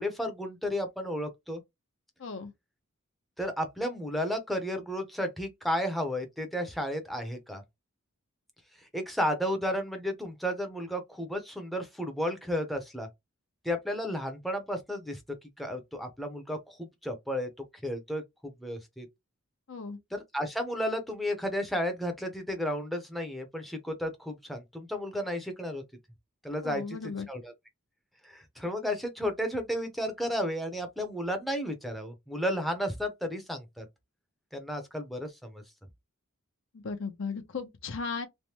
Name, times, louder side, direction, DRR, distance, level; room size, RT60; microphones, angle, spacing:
voice 1, 0.0-1.6 3.4-7.6 8.8-13.1 13.6-15.2 15.6-19.1 20.1-25.8 26.4-27.0 27.3-27.5 28.2-33.9 34.5-35.6, equal, ahead, 0.6 m, -33 dB
voice 2, 2.2-2.5 19.7-20.0 26.6-27.3 36.7-38.3, left 4 dB, 60° left, 0.6 m, -36 dB
3.3 x 2.1 x 2.8 m
head